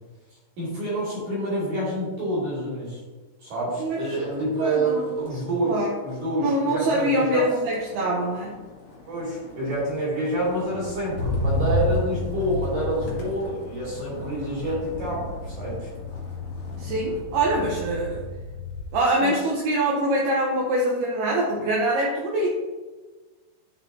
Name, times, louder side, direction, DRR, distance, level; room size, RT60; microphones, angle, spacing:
voice 1, 0.6-3.0 3.4-7.4 9.1-15.9 19.2-19.3, right 1 dB, 50° right, -7 dB, 2.8 m, -27 dB
voice 2, 3.8-4.2 4.6-5.0 5.6-5.9 6.4-8.5 16.8-18.3 18.9-22.5, right 1 dB, 80° right, -3 dB, 2.4 m, -24 dB
Motor vehicle (road), 3.9-4.3 4.6-19.0 19.4-19.9, left 2 dB, 70° left, 3.2 m, -33 dB
11.0 x 4.2 x 2.6 m, 1.3 s
omnidirectional pair, 5.3 m